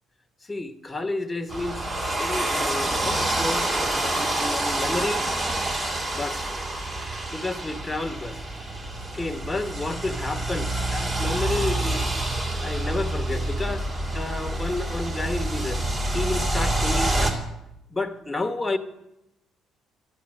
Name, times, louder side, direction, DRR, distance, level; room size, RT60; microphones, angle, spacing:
voice 1, 0.4-5.3 6.1-6.6 7.3-8.4 9.1-12.0 12.6-13.9 14.1-15.8 16.1-17.4 17.9-18.8, left 2 dB, 15° left, 1.2 m, -31 dB
sound 1, 1.5-17.3, right 1 dB, 30° right, 3.0 m, -27 dB
12.5 x 8.4 x 8.8 m
cardioid pair, 95°, 0 cm